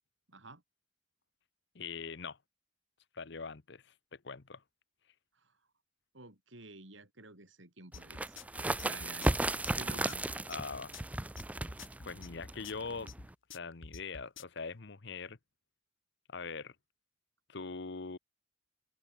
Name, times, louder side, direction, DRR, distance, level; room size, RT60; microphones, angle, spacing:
voice 1, 0.3-0.6 5.4-5.5 6.1-8.5 8.8-9.3 9.7-10.2, right 3 dB, 75° right, 4.6 m, -50 dB
voice 2, 1.7-2.4 3.1-4.6 10.5-10.9 12.1-13.1 13.5-15.4 16.3-16.7 17.5-18.2, left 4 dB, 60° left, 1.0 m, -42 dB
sound 1, 7.9-14.6, left 4 dB, 90° left, 2.2 m, -49 dB
sound 2, 8.0-13.3, right 2 dB, 5° right, 0.3 m, -35 dB
head